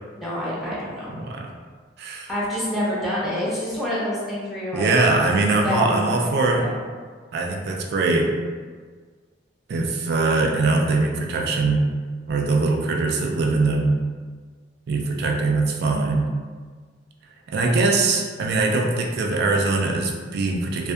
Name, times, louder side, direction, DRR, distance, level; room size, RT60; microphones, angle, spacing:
voice 1, 0.2-1.2 2.3-4.9 5.6-6.7, equal, ahead, -8 dB, 0.5 m, -27 dB
voice 2, 1.1-1.5 2.0-2.3 4.7-6.7 7.3-8.3 9.7-11.9 12.3-14.0 14.9-16.3 17.5-20.9, right 3 dB, 60° right, 1 dB, 0.3 m, -22 dB
2.6 x 2.1 x 2.3 m, 1.5 s
head